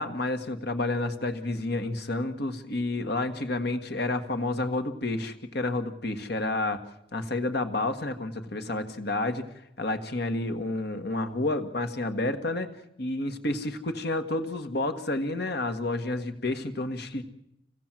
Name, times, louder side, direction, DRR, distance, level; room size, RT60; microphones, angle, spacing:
voice 1, 0.0-6.8 7.1-9.4 9.8-12.7 13.0-17.2, left 2 dB, 60° left, 9 dB, 1.7 m, -30 dB
26.5 x 16.5 x 7.6 m, 0.83 s
head